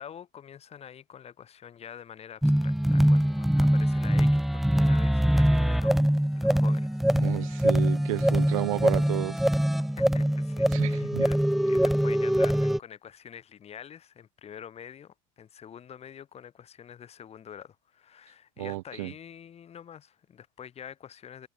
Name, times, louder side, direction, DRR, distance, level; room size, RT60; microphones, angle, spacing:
voice 1, 0.0-7.7 10.0-11.4 11.7-21.5, left 9 dB, 35° left, 7.6 m, -46 dB
sound 1, 2.4-12.8, equal, ahead, 0.3 m, -23 dB
voice 2, 7.2-9.4 10.7-11.3 18.6-19.1, right 18 dB, 80° right, 1.2 m, -32 dB
hypercardioid pair, 95°, 17 cm